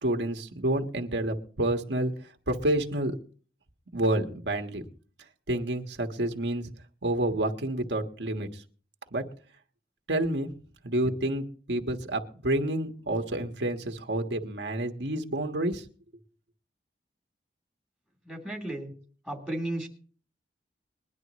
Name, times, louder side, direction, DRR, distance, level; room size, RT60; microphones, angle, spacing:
voice 1, 0.0-2.1 2.5-3.2 3.9-4.8 5.5-6.7 7.0-8.5 9.1-9.2 10.1-10.5 10.8-15.8, right 1 dB, 80° right, 3 dB, 1.4 m, -29 dB
voice 2, 18.2-18.9 19.3-19.9, right 1 dB, 5° left, -1 dB, 3.0 m, -34 dB
21.5 x 11.0 x 3.1 m, 0.41 s
head